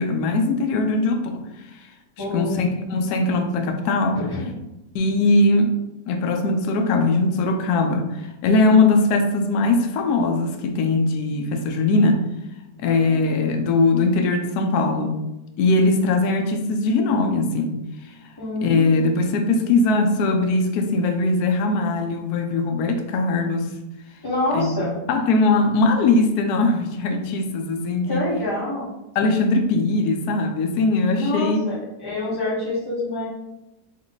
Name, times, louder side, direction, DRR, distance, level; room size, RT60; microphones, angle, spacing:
voice 1, 0.0-1.4 2.3-4.2 4.9-5.8 6.1-12.2 12.8-15.2 15.6-17.8 18.6-23.7 24.5-24.8 25.1-28.3 29.2-31.6, left 3 dB, 70° left, 4 dB, 1.0 m, -20 dB
voice 2, 2.2-2.7 4.1-4.5 12.8-13.2 18.4-19.1 24.2-24.9 28.1-28.9 31.2-33.3, left 2 dB, 15° left, -8 dB, 1.4 m, -27 dB
3.6 x 3.2 x 3.9 m, 0.94 s
omnidirectional pair, 1.9 m